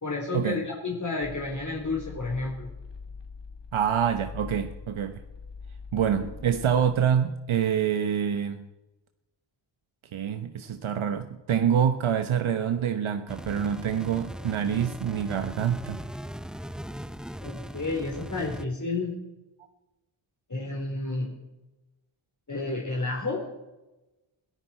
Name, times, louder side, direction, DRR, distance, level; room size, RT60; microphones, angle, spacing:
voice 1, 0.0-2.7 17.4-19.1 20.5-21.3 22.5-23.4, left 3 dB, 35° left, -2 dB, 3.8 m, -31 dB
sound 1, 1.2-7.2, left 5 dB, 55° left, 3.0 m, -43 dB
voice 2, 3.7-5.2 5.9-8.7 10.1-16.0, right 8 dB, 75° right, 8 dB, 1.1 m, -26 dB
sound 2, 13.3-18.6, equal, ahead, 0.6 m, -39 dB
22.5 x 13.5 x 4.4 m, 1.0 s
cardioid pair, 60°, 49 cm